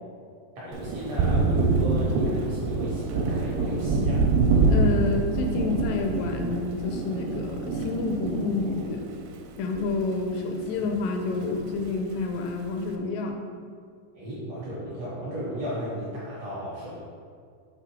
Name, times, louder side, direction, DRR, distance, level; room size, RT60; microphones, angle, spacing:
voice 1, 0.5-4.2 14.2-17.0, equal, 70° right, -7 dB, 1.6 m, -35 dB
Thunder, 0.7-10.5 10.8-11.9, right 3 dB, 85° right, 2.3 m, -26 dB
voice 2, 4.7-9.0 9.6-13.5, left 3 dB, 80° left, 4 dB, 2.0 m, -29 dB
6.0 x 3.7 x 4.6 m, 2.1 s
omnidirectional pair, 4.3 m